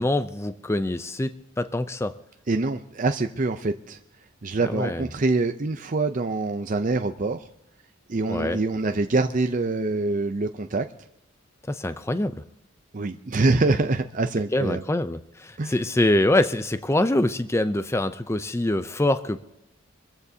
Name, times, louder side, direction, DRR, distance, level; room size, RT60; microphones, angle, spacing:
voice 1, 0.0-2.1 4.7-5.1 8.3-8.6 11.7-12.4 14.5-19.4, left 1 dB, 15° left, 11 dB, 0.5 m, -24 dB
voice 2, 2.5-4.0 4.4-7.5 8.1-10.9 12.9-14.8 15.6-15.8, right 3 dB, 40° right, 6 dB, 0.5 m, -25 dB
25.5 x 15.0 x 2.8 m, 0.88 s
head